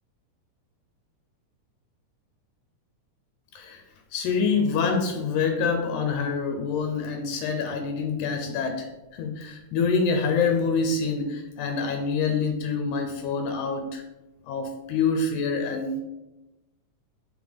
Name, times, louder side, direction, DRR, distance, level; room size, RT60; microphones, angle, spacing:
voice 1, 3.5-3.8 4.1-14.0 14.5-16.0, left 5 dB, 75° left, 4 dB, 2.1 m, -26 dB
5.2 x 4.2 x 5.2 m, 1.0 s
omnidirectional pair, 3.6 m